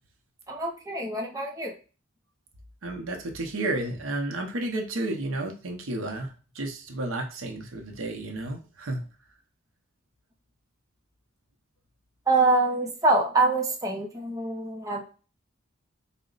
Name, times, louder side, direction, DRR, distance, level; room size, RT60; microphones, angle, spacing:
voice 1, 0.5-1.7 12.3-15.1, right 2 dB, 15° right, 0 dB, 0.6 m, -25 dB
voice 2, 2.8-9.0, right 2 dB, 90° right, 3 dB, 0.8 m, -32 dB
4.1 x 2.1 x 3.8 m, 0.34 s
head